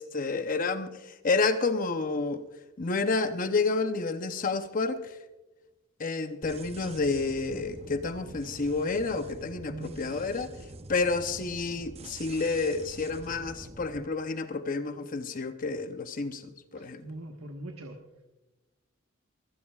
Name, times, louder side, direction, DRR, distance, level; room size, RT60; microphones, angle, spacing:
voice 1, 0.0-2.4 2.8-5.2 6.0-10.5 10.9-17.0, left 3 dB, 40° left, 0.7 m, -30 dB
sound 1, 6.4-14.0, right 2 dB, 30° right, 0.6 m, -46 dB
voice 2, 9.6-10.0 16.8-18.0, right 1 dB, 90° right, 1.4 m, -41 dB
24.5 x 16.0 x 2.4 m
head